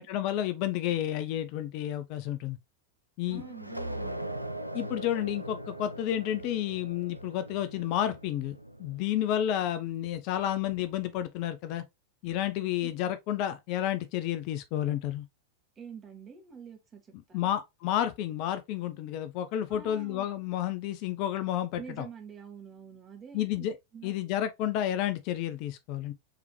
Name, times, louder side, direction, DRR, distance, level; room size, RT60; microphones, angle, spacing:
voice 1, 0.0-2.6 3.2-3.4 4.7-8.5 8.8-11.8 12.2-15.2 17.3-22.1 23.3-23.7 24.0-26.1, left 11 dB, 45° left, 0.5 m, -31 dB
voice 2, 3.3-4.3 12.8-12.9 15.7-17.5 19.7-20.3 21.8-23.6 23.9-24.1, right 6 dB, 25° right, 1.5 m, -46 dB
sound 1, 3.3-9.6, right 1 dB, 90° right, 0.4 m, -40 dB
4.8 x 3.4 x 3.0 m
figure-of-eight pair, 90°, 0 cm